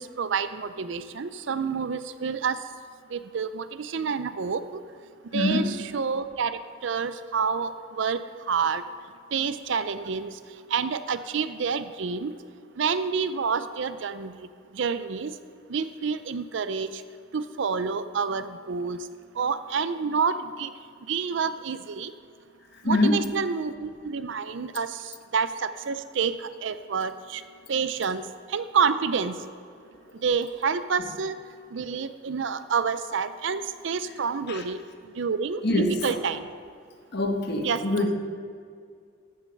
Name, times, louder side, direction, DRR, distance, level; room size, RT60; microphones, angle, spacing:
voice 1, 0.0-2.6 3.1-4.8 5.3-8.2 8.5-8.8 9.3-10.3 10.7-12.3 12.8-14.5 14.7-15.3 15.7-16.9 17.3-19.0 19.4-20.7 21.1-22.1 22.8-25.0 25.3-27.4 27.7-29.3 30.2-31.4 31.7-34.8 35.2-36.5 37.6-38.1, right 5 dB, 60° right, 12 dB, 0.5 m, -28 dB
voice 2, 5.3-5.8 22.8-23.3 34.5-34.6 35.6-36.0 37.1-38.1, left 2 dB, 55° left, 4 dB, 1.2 m, -24 dB
14.5 x 6.4 x 5.3 m, 2.2 s
head